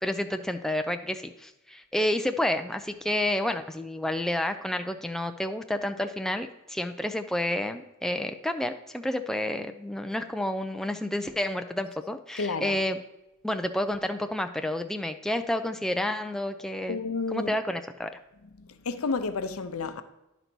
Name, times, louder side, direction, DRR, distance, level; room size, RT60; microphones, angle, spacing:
voice 1, 0.0-13.0 13.4-17.0 17.3-18.1, left 1 dB, ahead, 0.3 m, -30 dB
voice 2, 12.4-12.8 16.9-17.6 18.4-20.0, left 4 dB, 85° left, 0.6 m, -31 dB
10.5 x 4.0 x 6.0 m
head